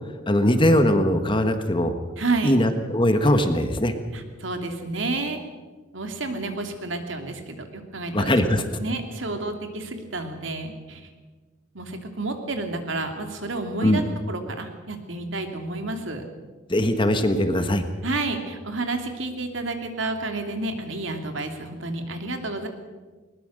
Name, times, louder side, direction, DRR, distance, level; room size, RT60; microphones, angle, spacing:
voice 1, 0.3-1.9 2.4-3.9 8.1-8.6 13.8-14.0 16.7-17.8, left 1 dB, 25° left, 8 dB, 1.4 m, -20 dB
voice 2, 2.2-2.6 4.1-5.4 5.9-8.3 8.8-11.1 11.7-16.2 18.0-22.7, right 2 dB, 70° right, 5 dB, 2.7 m, -30 dB
21.0 x 20.0 x 6.6 m, 1.3 s
head